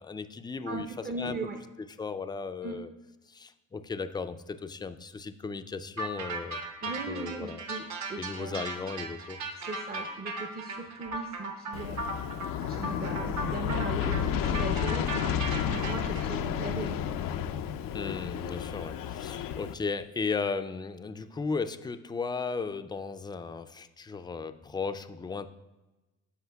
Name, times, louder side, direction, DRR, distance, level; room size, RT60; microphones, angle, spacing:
voice 1, 0.0-1.4 2.0-2.9 3.3-6.6 7.1-7.6 8.2-9.4 17.9-25.5, left 4 dB, 15° left, 10 dB, 0.3 m, -35 dB
voice 2, 0.7-1.6 2.6-2.8 6.8-7.8 8.1-8.6 9.6-12.0 12.7-17.1, right 3 dB, 30° right, 3 dB, 0.6 m, -38 dB
sound 1, 6.0-16.2, right 2 dB, 55° right, 1.0 m, -37 dB
Aircraft, 11.7-19.7, left 9 dB, 85° left, 0.5 m, -31 dB
14.0 x 5.0 x 2.3 m, 1.1 s
cardioid pair, 100°, 33 cm